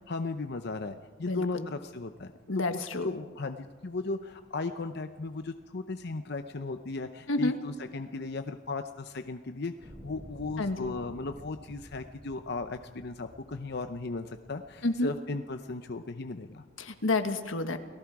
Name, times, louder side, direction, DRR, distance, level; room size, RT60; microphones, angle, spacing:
voice 1, 0.1-2.3 2.7-16.6, left 3 dB, 55° left, 8 dB, 0.7 m, -36 dB
voice 2, 1.2-1.7 2.5-3.1 7.3-7.5 10.6-10.9 14.8-15.1 16.8-17.8, left 2 dB, 85° left, 8 dB, 1.6 m, -29 dB
sound 1, 9.8-15.1 15.8-15.9, right 1 dB, 20° right, 4.8 m, -51 dB
29.5 x 18.5 x 4.8 m, 1.4 s
head